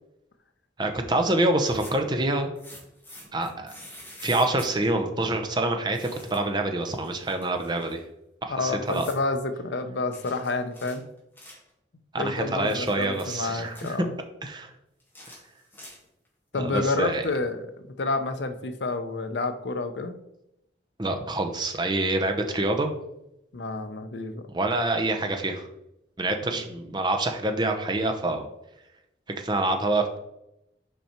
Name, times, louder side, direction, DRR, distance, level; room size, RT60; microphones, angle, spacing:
voice 1, 0.8-2.5 3.3-3.7 4.2-8.0 8.4-9.1 12.1-14.0 14.4-14.7 16.6-17.2 21.0-23.0 24.5-25.7 26.2-28.5 29.4-30.2, right 2 dB, 25° right, 5 dB, 0.7 m, -26 dB
sound 1, 1.5-2.1 2.6-4.7 5.9-6.5 6.8-8.0 8.9-9.2 10.1-11.7 12.4-14.0 15.0-16.3, left 1 dB, 10° left, 1.7 m, -47 dB
voice 2, 8.5-11.0 12.2-14.1 16.5-17.7 18.0-20.1 23.5-24.4 26.5-26.6, left 3 dB, 80° left, 8 dB, 0.7 m, -29 dB
5.5 x 5.0 x 4.4 m, 0.84 s
head